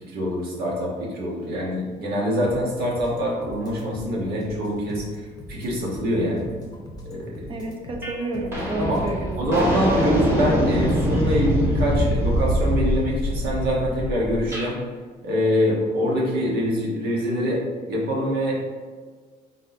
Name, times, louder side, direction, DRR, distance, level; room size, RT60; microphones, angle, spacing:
voice 1, 0.1-5.0 5.5-6.5 7.0-7.4 8.8-9.0 9.4-14.8 15.2-18.6, equal, 70° right, -3 dB, 1.3 m, -24 dB
sound 1, 2.4-10.2, left 1 dB, 20° left, 0.8 m, -41 dB
voice 2, 7.5-9.5, right 2 dB, 30° right, 1 dB, 0.8 m, -30 dB
sound 2, 8.0-8.2 8.5-14.7, equal, 15° right, 1.1 m, -23 dB
4.0 x 3.9 x 2.7 m, 1.5 s
cardioid pair, 110°, 17 cm